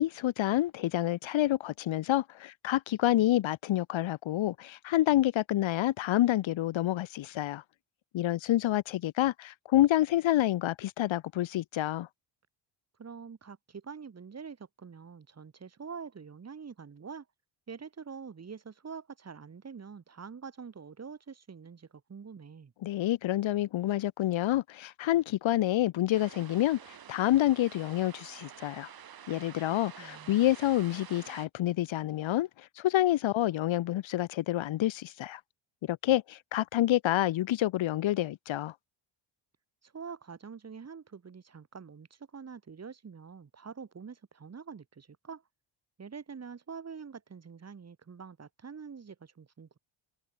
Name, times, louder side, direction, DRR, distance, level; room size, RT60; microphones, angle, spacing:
voice 1, 0.0-7.6 8.1-12.1 22.8-26.8 27.1-28.9 29.3-32.5 32.8-35.4 35.9-38.7, left 14 dB, 65° left, 1.9 m, -28 dB
voice 2, 13.0-17.3 17.7-22.7 29.7-30.4 39.8-45.4 46.0-49.8, right 6 dB, 30° right, 6.0 m, -45 dB
sound 1, 26.1-31.5, right 9 dB, 45° right, 4.1 m, -49 dB
cardioid pair, 130°, 49 cm